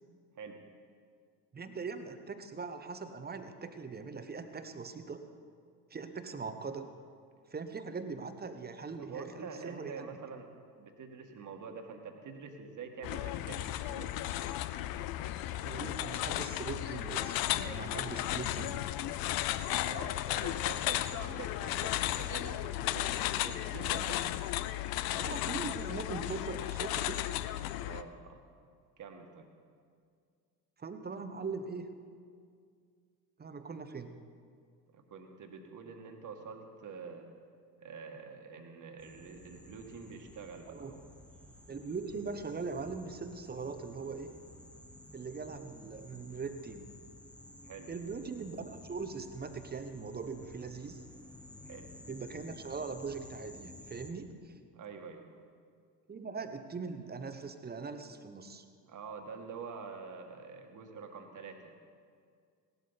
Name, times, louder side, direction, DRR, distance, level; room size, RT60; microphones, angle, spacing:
voice 1, 1.5-5.2 5.9-6.9 7.5-10.2 15.6-18.9 25.1-27.2 30.8-31.9 33.4-34.2 40.7-40.9 41.7-44.3 45.1-46.9 47.9-51.0 52.1-54.5 56.1-58.6, right 4 dB, 20° right, 9 dB, 1.1 m, -41 dB
voice 2, 9.0-10.5 10.8-14.1 19.7-24.2 27.8-28.4 29.0-29.5 34.9-37.3 37.8-41.0 47.6-47.9 51.6-51.9 54.7-55.2 58.9-61.7, right 5 dB, 35° right, 4 dB, 1.9 m, -46 dB
sound 1, 13.0-28.0, left 14 dB, 45° left, 0.6 m, -34 dB
sound 2, 39.0-54.1, left 1 dB, ahead, 1.2 m, -53 dB
17.5 x 12.0 x 4.1 m, 2.1 s
figure-of-eight pair, 65°, 49 cm